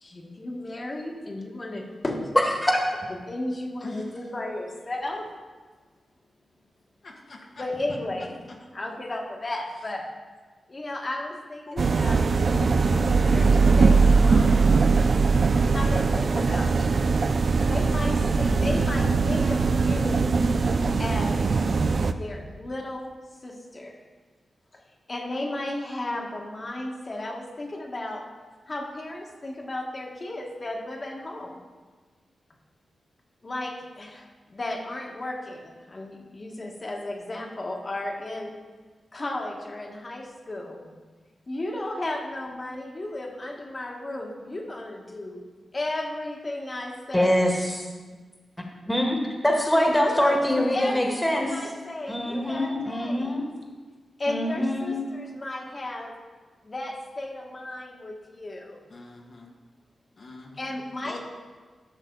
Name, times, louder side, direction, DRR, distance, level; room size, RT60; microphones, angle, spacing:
voice 1, 0.0-2.4 3.3-5.3 7.6-10.1 10.7-15.0 15.7-17.2 17.7-20.3 21.0-21.4 22.1-23.1 23.4-24.0 24.7-24.8 25.1-28.3 28.7-31.7 33.4-38.5 39.1-40.9 41.5-45.4 45.7-47.4 50.0-53.5 54.2-56.1 56.6-58.9 60.6-61.2, left 1 dB, 40° left, 1 dB, 1.7 m, -34 dB
voice 2, 7.0-7.6 11.7-12.0 58.9-59.5 60.2-60.8 61.0-61.2, left 3 dB, 65° left, -1 dB, 1.5 m, -40 dB
sound 1, 11.8-22.1, right 4 dB, 60° right, 0.5 m, -21 dB
voice 3, 47.1-47.8 48.9-49.2 49.4-51.5 52.1-53.4 54.3-54.9, left 1 dB, 10° left, 0 dB, 1.7 m, -23 dB
12.5 x 6.0 x 4.0 m, 1.4 s
cardioid pair, 65°, 0 cm